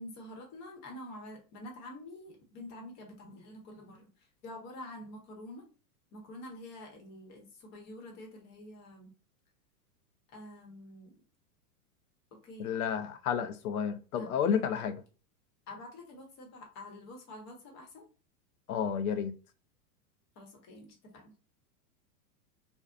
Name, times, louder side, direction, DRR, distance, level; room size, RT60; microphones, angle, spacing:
voice 1, 0.0-4.1 4.4-5.6 6.1-9.1 10.3-11.1 12.4-12.7 14.2-14.4 15.7-18.0 20.4-21.3, left 1 dB, 35° left, 1.1 m, -47 dB
voice 2, 12.6-15.0 18.7-19.3, left 7 dB, 65° left, 0.6 m, -31 dB
2.6 x 2.2 x 2.4 m
hypercardioid pair, 120°, 47 cm